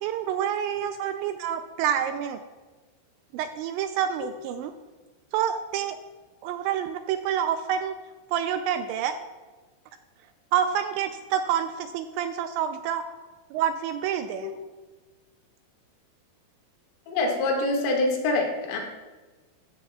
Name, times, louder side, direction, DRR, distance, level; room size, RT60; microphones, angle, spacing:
voice 1, 0.0-2.4 3.3-4.7 5.3-6.0 6.4-8.0 8.3-9.2 10.5-13.0 13.5-14.5, right 9 dB, 85° right, 8 dB, 2.6 m, -28 dB
voice 2, 17.1-18.8, left 2 dB, 90° left, 0 dB, 4.6 m, -25 dB
14.5 x 14.5 x 2.4 m, 1.3 s
omnidirectional pair, 5.6 m